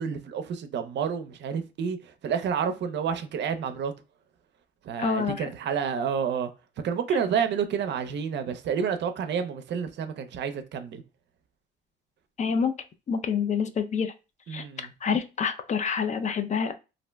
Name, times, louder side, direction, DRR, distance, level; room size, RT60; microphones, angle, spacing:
voice 1, 0.0-2.0 2.2-3.9 4.9-6.5 6.8-11.0 14.5-14.9, right 7 dB, 65° right, 0.5 m, -29 dB
voice 2, 5.0-5.5 7.1-7.2 12.4-12.7 13.1-14.1 14.5-14.6 15.0-16.7, left 6 dB, 35° left, 0.4 m, -27 dB
2.5 x 2.0 x 3.3 m
cardioid pair, 90°, 20 cm